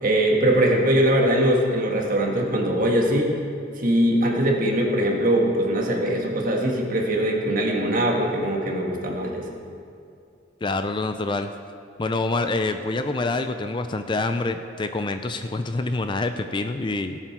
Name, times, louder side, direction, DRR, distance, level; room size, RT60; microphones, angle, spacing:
voice 1, 0.0-3.3 3.8-9.5, right 1 dB, 45° right, 0 dB, 1.6 m, -21 dB
voice 2, 10.6-11.5 12.0-17.2, left 2 dB, 25° left, 8 dB, 0.4 m, -26 dB
18.0 x 7.7 x 4.6 m, 2.4 s
head